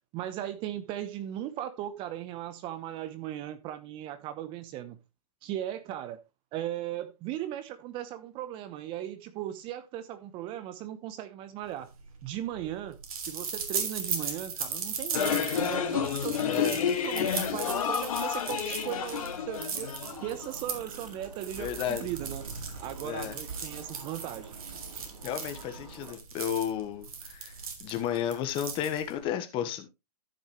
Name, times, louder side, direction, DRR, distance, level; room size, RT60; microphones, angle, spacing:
voice 1, 0.1-5.0 5.4-6.2 6.5-11.9 12.2-13.0 13.3-19.9 20.2-22.4 22.8-24.6, right 12 dB, 25° right, 1.0 m, -37 dB
sound 1, 11.8-29.3, right 5 dB, 60° right, 3.2 m, -38 dB
sound 2, 15.1-20.6, left 8 dB, 60° left, 2.4 m, -30 dB
voice 2, 16.5-16.8 21.6-22.1 23.0-23.3 25.2-27.5 27.8-29.9, left 9 dB, 25° left, 1.4 m, -32 dB
sound 3, 20.0-26.1, right 4 dB, 75° right, 4.5 m, -47 dB
14.0 x 6.4 x 3.2 m
hypercardioid pair, 135°, 20 cm